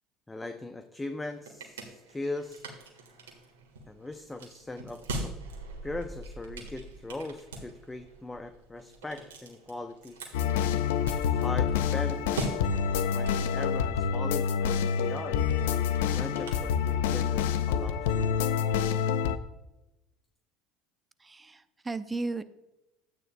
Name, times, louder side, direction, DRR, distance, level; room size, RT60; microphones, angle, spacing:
voice 1, 0.3-2.9 3.9-5.3 5.8-10.2 11.3-12.5 13.1-15.4 16.2-18.2, left 2 dB, 15° left, 7 dB, 0.7 m, -40 dB
sound 1, 1.0-17.3, right 2 dB, 85° right, 1.6 m, -43 dB
sound 2, 10.3-19.4, left 7 dB, 75° left, 0.5 m, -27 dB
voice 2, 21.2-22.4, right 3 dB, 20° right, 13 dB, 0.7 m, -35 dB
12.0 x 9.0 x 2.2 m, 0.98 s
hypercardioid pair, 70°, 0 cm